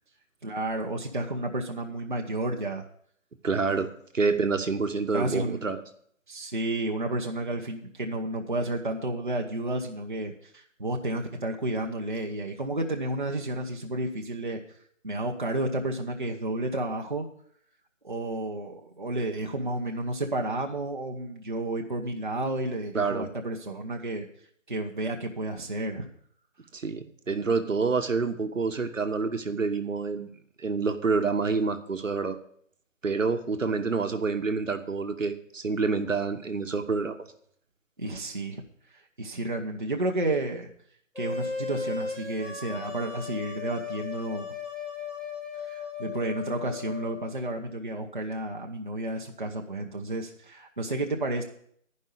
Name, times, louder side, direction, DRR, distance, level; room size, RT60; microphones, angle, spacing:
voice 1, 0.4-2.9 5.1-5.6 6.3-14.6 15.0-17.3 18.0-24.3 24.7-26.1 38.0-38.6 39.2-40.7 41.2-44.5 45.6-51.4, right 2 dB, 40° right, 2 dB, 0.9 m, -31 dB
voice 2, 3.4-3.9 4.1-5.8 22.9-23.3 26.7-30.3 30.6-32.4 33.0-37.3, right 4 dB, 70° right, 8 dB, 1.2 m, -27 dB
sound 1, 41.2-47.3, left 5 dB, ahead, 0.6 m, -36 dB
10.5 x 5.4 x 8.2 m, 0.64 s
figure-of-eight pair, 175°, 40 cm